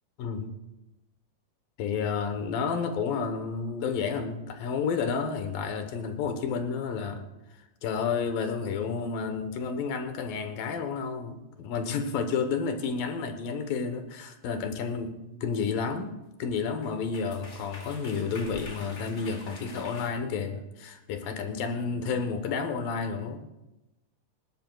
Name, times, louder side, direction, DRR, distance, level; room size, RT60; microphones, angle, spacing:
voice 1, 0.2-0.5 1.8-7.2 7.8-23.5, left 5 dB, 80° left, 7 dB, 2.8 m, -31 dB
sound 1, 14.8-15.0 16.5-16.6 16.8-20.1, left 2 dB, 30° left, 1.2 m, -46 dB
20.0 x 18.0 x 2.3 m, 0.98 s
omnidirectional pair, 4.0 m